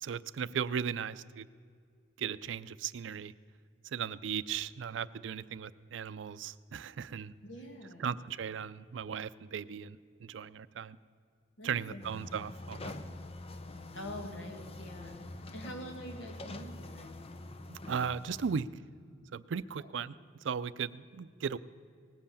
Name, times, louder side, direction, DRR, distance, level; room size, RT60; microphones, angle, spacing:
voice 1, 0.0-1.5 2.2-3.3 3.8-7.3 8.0-11.0 11.6-13.0 17.7-18.7 19.3-20.1 20.4-21.6, right 7 dB, 85° right, 16 dB, 0.4 m, -37 dB
voice 2, 7.4-8.1 11.6-12.0 13.9-15.2 15.5-17.1 19.8-19.9, equal, 85° left, 3 dB, 2.1 m, -45 dB
sound 1, 12.0-18.6, left 2 dB, 35° left, 0.6 m, -45 dB
18.5 x 7.8 x 7.0 m, 2.2 s
head